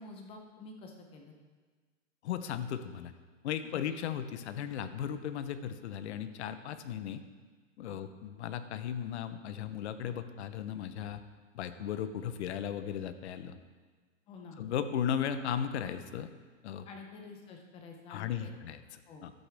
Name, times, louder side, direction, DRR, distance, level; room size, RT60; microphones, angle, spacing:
voice 1, 0.0-1.3 3.7-3.9 7.8-8.0 14.3-14.6 16.9-18.5 19.1-19.2, left 3 dB, 15° left, 2 dB, 0.7 m, -49 dB
voice 2, 2.2-3.1 3.4-7.2 7.8-11.2 11.5-13.6 14.6-16.3 16.6-16.9 18.1-19.3, left 9 dB, 60° left, 11 dB, 0.8 m, -36 dB
12.5 x 8.1 x 3.4 m, 1.4 s
hypercardioid pair, 155°, 39 cm